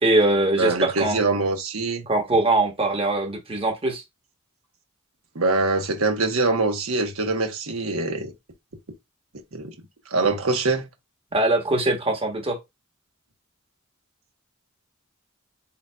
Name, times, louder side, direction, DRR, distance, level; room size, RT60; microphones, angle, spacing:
voice 1, 0.0-1.2 2.1-4.0 11.3-12.6, right 2 dB, 25° right, 1.1 m, -22 dB
voice 2, 0.6-2.1 5.3-8.3 9.5-9.7 10.1-10.9, right 3 dB, 90° right, 1.1 m, -23 dB
6.9 x 2.6 x 2.3 m
head